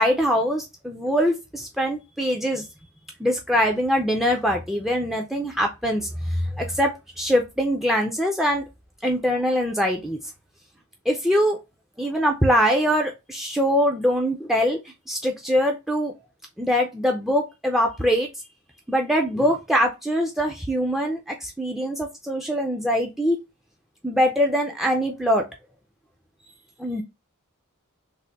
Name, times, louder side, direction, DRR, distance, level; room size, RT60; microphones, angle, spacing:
voice 1, 0.0-2.7 3.2-8.7 9.0-10.2 11.1-11.6 12.0-14.8 15.1-16.1 16.6-18.3 18.9-23.4 24.0-25.5 26.8-27.0, equal, ahead, 2 dB, 0.4 m, -23 dB
3.3 x 2.1 x 3.9 m, 0.23 s
head